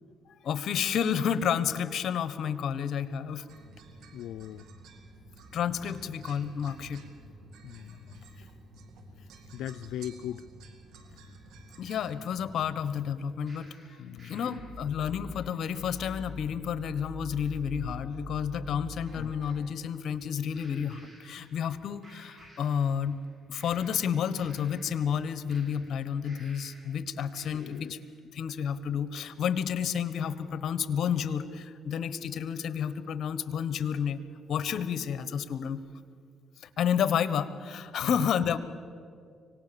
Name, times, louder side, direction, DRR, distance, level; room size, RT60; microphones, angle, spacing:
voice 1, 0.4-3.5 5.5-7.0 11.8-13.7 14.2-23.2 23.5-28.0 28.3-34.2 34.5-35.8 36.8-38.6, left 8 dB, 65° left, 13 dB, 1.2 m, -30 dB
sound 1, 3.5-13.0, right 2 dB, 80° right, 2.1 m, -51 dB
voice 2, 4.1-4.6 7.6-8.3 9.5-10.5 14.0-14.4 19.2-19.3 27.4-28.0, left 11 dB, 85° left, 13 dB, 0.4 m, -39 dB
sound 2, 13.5-19.6 20.5-21.8 22.0-23.2 23.5-27.0 27.3-28.0, left 1 dB, 30° right, 6.4 m, -47 dB
25.0 x 18.5 x 7.0 m, 2.3 s
cardioid pair, 90°, 0 cm